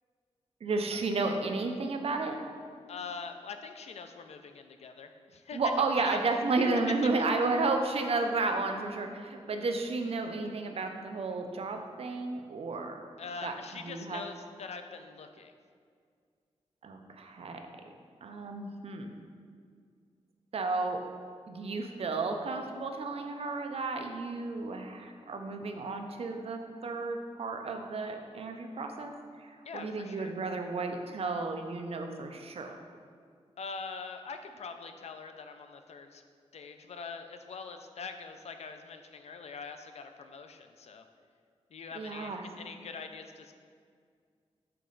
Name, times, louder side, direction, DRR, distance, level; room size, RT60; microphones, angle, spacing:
voice 1, 0.6-2.4 5.5-13.0 13.4-14.2 16.8-17.7 18.2-19.2 20.5-21.0 21.5-29.1 29.4-32.8 41.9-42.5, right 3 dB, 60° right, 4 dB, 0.5 m, -32 dB
voice 2, 2.9-6.8 13.2-15.5 29.6-30.3 33.6-36.2 36.5-41.0 41.7-43.5, left 5 dB, 70° left, 7 dB, 0.4 m, -43 dB
6.7 x 4.2 x 3.9 m, 2.1 s
wide cardioid pair, 140°, 11 cm